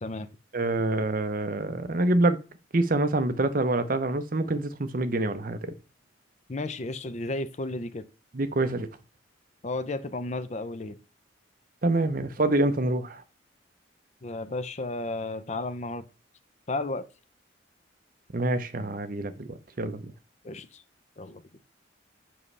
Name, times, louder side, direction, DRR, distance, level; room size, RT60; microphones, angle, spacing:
voice 1, 0.5-2.4 2.7-5.7 8.3-8.9 11.8-13.2 18.3-20.1, right 2 dB, 45° right, 0.7 m, -26 dB
voice 2, 6.5-8.0 9.6-11.0 14.2-16.1 16.7-17.0 20.4-20.8 21.2-21.4, left 2 dB, 35° left, 0.5 m, -33 dB
7.5 x 5.4 x 3.3 m
head